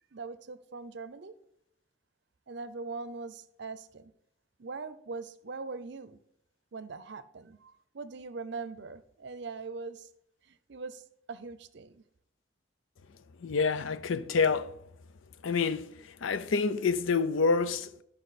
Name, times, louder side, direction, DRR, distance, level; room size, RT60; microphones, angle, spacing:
voice 1, 0.1-1.3 2.5-4.1 4.6-6.2 6.7-10.1 10.5-11.0 11.3-12.0, right 4 dB, 60° right, 0.6 m, -41 dB
voice 2, 13.4-14.7 15.4-15.9 16.2-18.0, left 4 dB, 80° left, 0.5 m, -27 dB
11.5 x 5.4 x 4.2 m
head